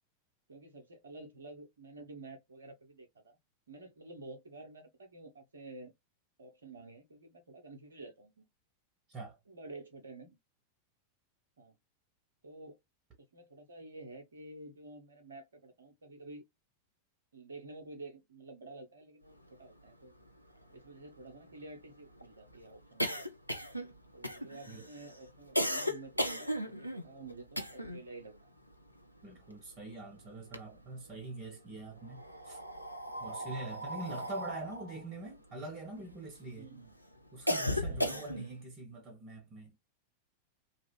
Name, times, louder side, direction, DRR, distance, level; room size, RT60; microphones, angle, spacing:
voice 1, 0.5-3.4 3.7-5.9 6.4-8.4 9.5-10.4 11.6-11.7 12.4-12.8 13.2-16.4 17.3-20.1 20.7-23.3 24.1-28.6 33.4-33.5 36.5-36.9 37.9-38.4, right 2 dB, 70° right, 0.8 m, -50 dB
sound 1, 19.9-20.0 20.2-20.3 20.6-28.1 28.4-29.9 30.3-31.2 32.0-36.5 36.9-38.6, equal, 90° left, 0.4 m, -36 dB
voice 2, 29.2-32.6 33.2-36.7 37.3-39.8, right 2 dB, 25° right, 1.2 m, -44 dB
2.8 x 2.4 x 3.2 m
figure-of-eight pair, 90°, 0 cm